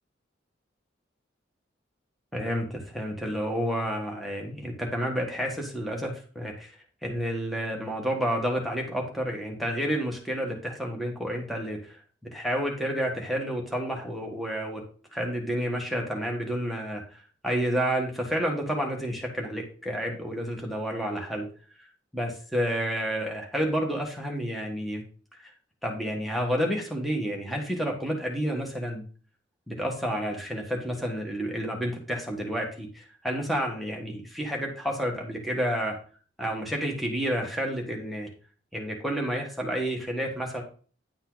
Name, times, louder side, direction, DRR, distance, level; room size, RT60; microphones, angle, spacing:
voice 1, 2.3-6.8 7.0-14.8 15.1-21.5 22.1-25.0 25.4-25.5 25.8-29.0 29.7-36.0 36.4-38.3 38.7-40.6, equal, ahead, 0 dB, 1.3 m, -30 dB
10.5 x 5.5 x 3.9 m, 0.41 s
head